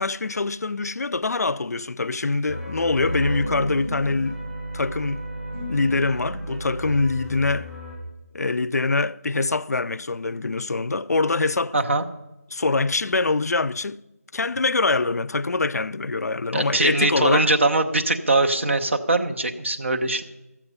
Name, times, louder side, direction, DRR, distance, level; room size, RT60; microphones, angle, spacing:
voice 1, 0.0-4.4 4.7-5.2 5.7-7.7 8.3-11.7 12.5-14.0 14.3-17.5, left 3 dB, 90° left, 0.4 m, -24 dB
sound 1, 2.5-7.9, equal, 10° left, 4.8 m, -32 dB
voice 2, 11.7-12.0 16.5-20.2, right 2 dB, 50° right, 0.9 m, -21 dB
13.5 x 7.4 x 5.4 m
figure-of-eight pair, 175°, 8 cm